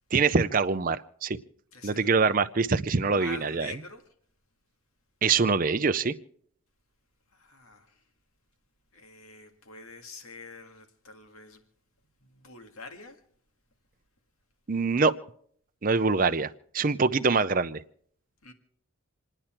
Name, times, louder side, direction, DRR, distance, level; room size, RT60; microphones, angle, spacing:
voice 1, 0.1-1.4 1.8-3.8 5.2-6.1 14.7-15.1 15.8-17.8, right 4 dB, 40° right, 0.5 m, -24 dB
voice 2, 1.7-2.1 2.9-4.0 7.3-8.0 8.9-11.6 12.3-13.2 18.4-18.5, left 3 dB, 85° left, 2.0 m, -46 dB
28.0 x 10.0 x 4.4 m
head